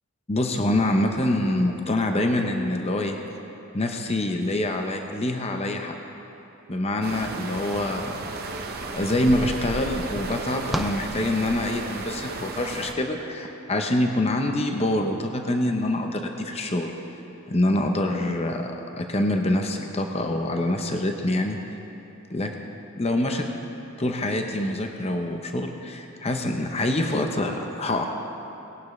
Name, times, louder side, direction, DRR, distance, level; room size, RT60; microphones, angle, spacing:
voice 1, 0.3-3.2 3.7-5.9 6.7-8.2 8.9-16.9 17.5-21.6 22.3-22.5 23.0-23.5 24.0-28.1, left 1 dB, 30° left, 3 dB, 0.7 m, -25 dB
sound 1, 7.0-12.9, right 3 dB, 45° right, 0.8 m, -34 dB
sound 2, 10.2-12.0, equal, ahead, 0.4 m, -37 dB
18.5 x 11.5 x 3.2 m, 2.9 s
head